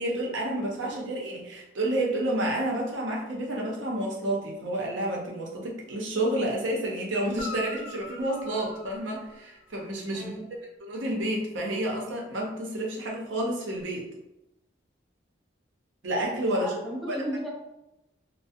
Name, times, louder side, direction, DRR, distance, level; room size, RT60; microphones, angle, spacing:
voice 1, 0.0-10.3 10.8-14.1 16.0-16.7 17.0-17.2, right 1 dB, 80° right, -1 dB, 0.6 m, -30 dB
voice 2, 0.8-1.1 10.1-10.5 16.5-17.5, right 1 dB, ahead, -6 dB, 0.5 m, -35 dB
Guitar, 7.4-9.9 13.7-13.8, left 4 dB, 75° left, 0.4 m, -42 dB
2.4 x 2.0 x 2.5 m, 0.89 s
head